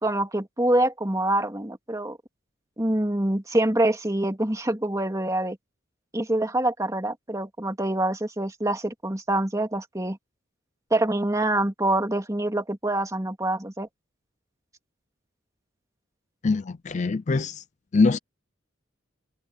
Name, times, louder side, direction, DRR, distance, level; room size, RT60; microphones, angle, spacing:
voice 1, 0.0-2.2 2.8-5.6 6.1-10.2 10.9-13.9, right 1 dB, 15° right, 2.6 m, -25 dB
voice 2, 16.4-17.6 17.9-18.2, left 3 dB, 35° left, 0.4 m, -23 dB
head